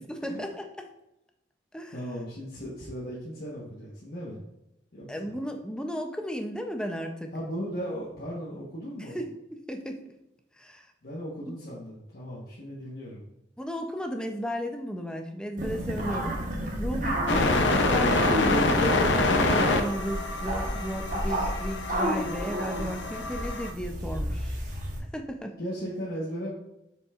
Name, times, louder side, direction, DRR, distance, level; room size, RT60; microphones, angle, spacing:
voice 1, 0.1-0.6 1.7-1.9 5.1-7.3 9.1-9.4 9.7-10.0 10.6-10.9 13.6-16.4 16.8-24.6 25.1-25.6, equal, 5° left, 4 dB, 0.6 m, -34 dB
voice 2, 1.9-4.4 4.9-5.3 7.3-9.2 11.0-13.3 25.6-26.5, equal, 55° left, -7 dB, 1.2 m, -37 dB
sound 1, 15.6-25.0, right 1 dB, 45° right, 1.2 m, -32 dB
sound 2, 17.3-23.7, left 2 dB, 80° left, 0.7 m, -26 dB
7.0 x 5.3 x 2.5 m, 0.89 s
head